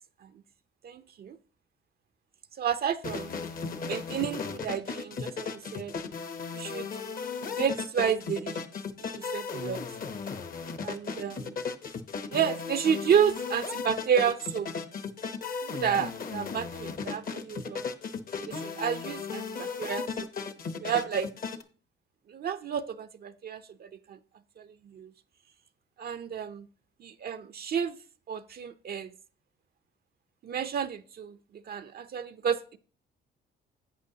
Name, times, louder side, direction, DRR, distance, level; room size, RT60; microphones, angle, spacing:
voice 1, 0.8-1.4 2.6-3.3 3.8-5.9 6.5-6.9 7.4-8.6 9.0-9.8 10.8-11.6 12.3-14.7 15.6-17.9 18.4-20.3 20.8-21.3 22.3-24.2 24.6-25.1 26.0-26.7 27.0-28.0 28.3-29.1 30.4-32.8, right 8 dB, 50° right, 10 dB, 0.5 m, -31 dB
sound 1, 3.0-21.6, left 5 dB, 45° left, 0.9 m, -36 dB
11.0 x 8.1 x 2.8 m, 0.40 s
cardioid pair, 90°, 20 cm